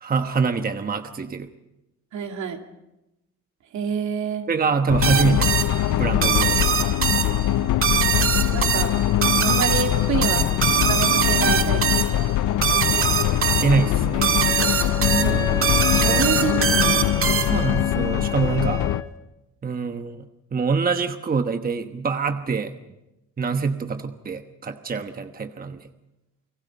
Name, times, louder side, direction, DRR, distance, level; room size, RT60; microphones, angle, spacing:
voice 1, 0.0-1.5 4.5-5.6 5.9-6.9 13.0-14.9 15.9-16.3 17.4-18.8 19.6-22.7 23.4-25.9, right 5 dB, 30° right, 7 dB, 1.2 m, -25 dB
voice 2, 2.1-2.6 3.7-4.5 8.5-8.9 9.4-10.5 10.9-12.1 15.1-17.5, right 6 dB, 70° right, 3 dB, 2.6 m, -28 dB
sound 1, 4.9-19.0, left 12 dB, 80° left, 0.7 m, -22 dB
sound 2, 5.0-17.8, right 7 dB, 45° right, 1.6 m, -23 dB
Wind instrument woodwind instrument, 14.4-19.1, left 4 dB, 10° left, 1.8 m, -31 dB
30.0 x 18.5 x 5.5 m, 0.95 s
cardioid pair, 90°, 30 cm